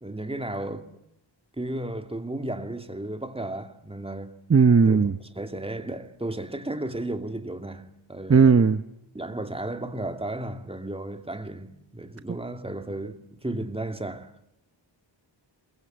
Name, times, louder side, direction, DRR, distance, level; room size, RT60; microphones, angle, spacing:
voice 1, 0.0-0.9 1.6-4.4 4.9-8.6 9.1-14.4, right 1 dB, 10° right, 2.6 m, -34 dB
voice 2, 4.5-5.1 8.3-8.8, right 5 dB, 30° right, 1.0 m, -17 dB
27.5 x 23.0 x 8.0 m
wide cardioid pair, 100°, 45 cm